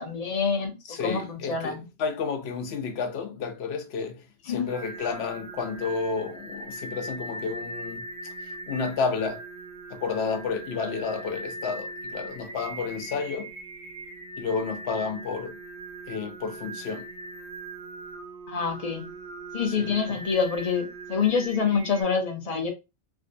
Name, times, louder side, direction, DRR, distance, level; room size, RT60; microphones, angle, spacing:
voice 1, 0.0-1.8 4.5-4.8 18.5-19.1 19.5-22.7, left 5 dB, 40° left, 0.7 m, -26 dB
voice 2, 0.8-9.4 9.9-13.5 14.4-15.6 16.1-17.1 19.7-20.2, left 5 dB, 70° left, 0.9 m, -31 dB
Singing, 4.7-22.0, right 2 dB, 5° left, 0.9 m, -40 dB
3.6 x 2.6 x 2.6 m
omnidirectional pair, 1.1 m